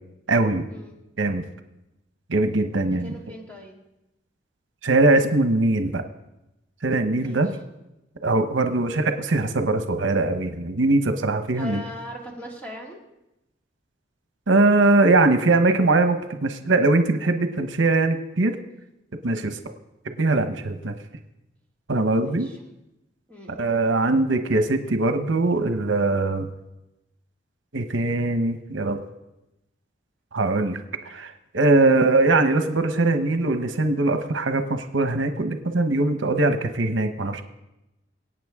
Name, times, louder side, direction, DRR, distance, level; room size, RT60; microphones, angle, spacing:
voice 1, 0.3-0.6 1.2-1.4 2.3-3.1 4.8-6.0 6.8-7.6 8.2-11.8 14.5-18.6 19.2-19.6 20.2-20.9 21.9-22.5 23.6-26.5 27.7-29.0 30.3-30.8 31.1-37.4, right 2 dB, 80° right, 7 dB, 1.0 m, -21 dB
voice 2, 2.9-3.8 7.2-7.4 8.5-8.7 11.6-13.0 19.3-19.5 22.2-22.6 23.3-23.7, left 1 dB, 10° left, -1 dB, 2.1 m, -40 dB
24.0 x 8.8 x 3.6 m, 0.93 s
head